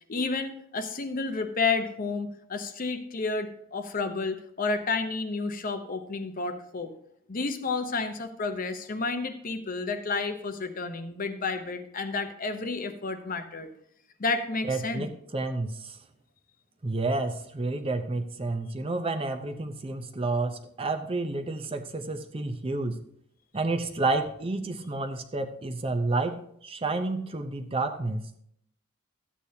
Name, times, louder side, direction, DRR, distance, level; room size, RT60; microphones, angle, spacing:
voice 1, 0.1-6.9 7.3-13.7 14.2-15.1, left 4 dB, 40° left, 8 dB, 0.8 m, -31 dB
voice 2, 14.7-16.0 16.8-23.0 23.5-28.3, right 2 dB, 25° right, 7 dB, 0.6 m, -30 dB
13.0 x 8.5 x 2.8 m, 0.69 s
head